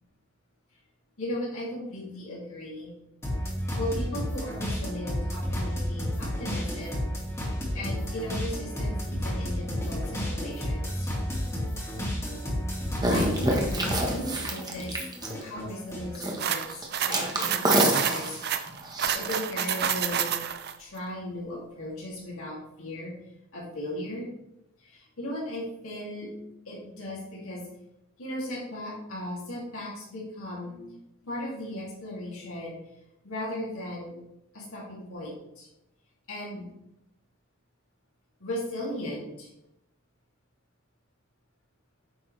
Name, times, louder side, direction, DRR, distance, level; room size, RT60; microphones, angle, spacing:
voice 1, 1.2-2.9 3.8-7.1 7.7-11.1 13.1-15.0 15.4-18.4 19.1-20.4 20.8-24.3 24.8-26.3 26.6-27.6 28.2-31.0 31.2-32.8 33.2-34.1 34.5-35.7 36.3-36.7 38.4-39.5, left 1 dB, 85° left, -6 dB, 2.8 m, -37 dB
sound 1, 3.2-14.4 14.8-16.1, equal, 15° left, 2.1 m, -31 dB
sound 2, 13.0-15.6 16.1-16.5 16.7-19.3, right 1 dB, 20° right, 1.3 m, -27 dB
sound 3, 16.4-20.7, right 8 dB, 50° right, 0.6 m, -29 dB
9.4 x 7.0 x 3.3 m, 0.85 s
head